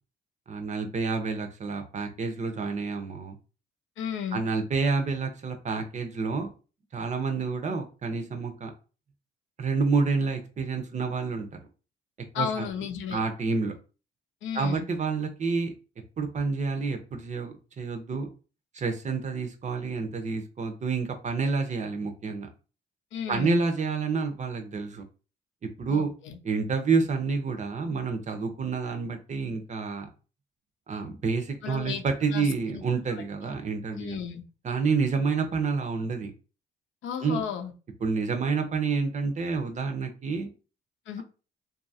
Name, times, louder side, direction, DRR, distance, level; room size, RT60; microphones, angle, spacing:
voice 1, 0.5-3.4 4.3-6.5 6.9-8.7 9.6-11.6 12.4-12.6 13.1-13.7 14.5-15.7 16.2-18.3 18.7-22.5 23.3-25.0 25.8-26.1 26.4-30.1 30.9-34.2 34.6-36.3 37.2-37.4 38.0-40.5, right 4 dB, 35° right, 5 dB, 0.6 m, -28 dB
voice 2, 4.0-4.4 12.3-13.2 14.4-14.8 23.1-23.6 25.9-26.4 31.6-32.0 32.3-32.8 33.9-34.4 37.0-37.7 41.1-41.2, left 7 dB, 75° left, 5 dB, 0.5 m, -33 dB
2.7 x 2.4 x 2.6 m, 0.34 s
cardioid pair, 90°, 20 cm